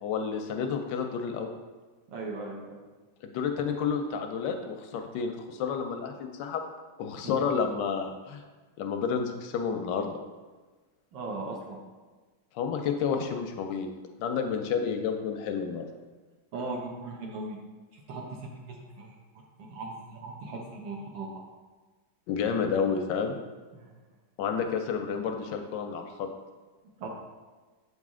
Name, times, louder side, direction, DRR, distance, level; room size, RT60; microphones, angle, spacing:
voice 1, 0.0-1.5 3.2-6.6 7.0-8.4 8.8-10.1 12.5-13.9 14.2-15.9 22.3-23.4 24.4-26.3, left 6 dB, 75° left, 5 dB, 1.1 m, -30 dB
voice 2, 2.1-2.8 7.2-7.5 11.1-11.8 16.5-17.6 17.9-19.1 19.6-21.3 23.7-23.9 27.0-27.1, right 3 dB, 65° right, -1 dB, 1.5 m, -38 dB
7.8 x 4.1 x 3.6 m, 1.3 s
omnidirectional pair, 2.3 m